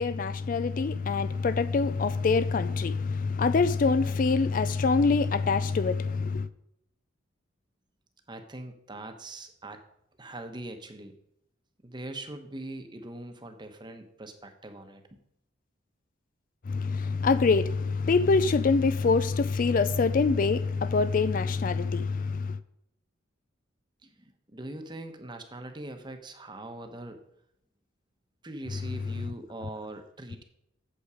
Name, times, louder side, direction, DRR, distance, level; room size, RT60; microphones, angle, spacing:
voice 1, 0.0-6.5 16.7-22.6, left 4 dB, 45° left, 0.4 m, -25 dB
voice 2, 8.3-9.8 10.2-11.1 11.8-15.0 24.0-27.2 28.4-30.4, right 1 dB, 20° right, 1.0 m, -42 dB
8.4 x 8.0 x 4.9 m
head